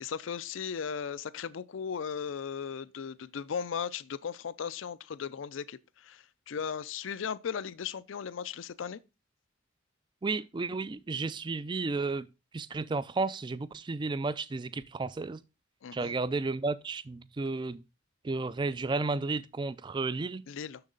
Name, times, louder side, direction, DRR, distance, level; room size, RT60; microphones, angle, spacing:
voice 1, 0.0-9.0 15.8-16.1 20.5-20.8, left 7 dB, 75° left, 0.4 m, -37 dB
voice 2, 10.2-12.3 12.5-15.4 15.9-17.8 18.2-20.4, right 3 dB, 25° right, 0.3 m, -32 dB
6.8 x 6.4 x 3.8 m
head